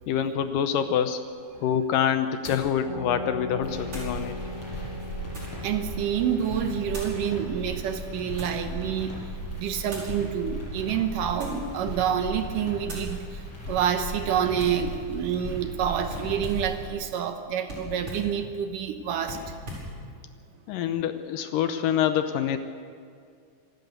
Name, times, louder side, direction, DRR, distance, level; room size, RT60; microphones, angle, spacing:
voice 1, 0.1-1.2 1.6-4.4 20.7-22.6, left 9 dB, 75° left, 9 dB, 2.2 m, -26 dB
sound 1, 1.3-1.4 2.4-2.7 3.9-4.2 4.9-5.7 6.9-7.2 8.0-8.6 9.9-10.2 11.3-11.7 12.2-12.4 12.8-13.1 14.6-14.9 16.1-16.7 17.6-18.3 19.2-19.9, equal, 35° right, 6.4 m, -40 dB
sound 2, 2.8-12.0, left 1 dB, 15° right, 4.9 m, -41 dB
sound 3, 3.6-16.9, right 1 dB, 35° left, 7.6 m, -37 dB
voice 2, 5.6-9.2 9.6-13.4 13.7-19.4, right 8 dB, 70° right, 7 dB, 2.4 m, -28 dB
26.0 x 12.0 x 8.1 m, 2.2 s
omnidirectional pair, 4.3 m